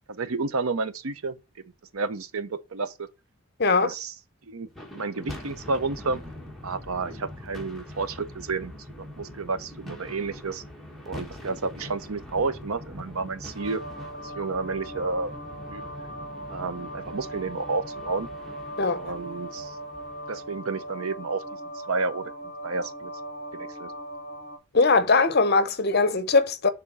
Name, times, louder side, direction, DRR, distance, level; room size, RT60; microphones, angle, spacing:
voice 1, 0.1-1.4 1.9-3.1 3.7-4.1 4.5-4.7 4.9-6.2 6.6-8.7 9.2-10.6 11.1-13.8 14.2-15.3 15.7-15.8 16.5-18.3 18.9-19.8 20.3-21.6 21.9-23.1 23.6-23.9, right 3 dB, 80° right, 0.7 m, -31 dB
voice 2, 3.6-3.9 18.8-19.0 24.7-26.7, left 3 dB, 50° left, 0.7 m, -21 dB
sound 1, 4.7-21.1, left 1 dB, ahead, 1.3 m, -43 dB
sound 2, 13.6-24.6, right 1 dB, 35° right, 1.8 m, -39 dB
6.9 x 3.7 x 4.0 m
head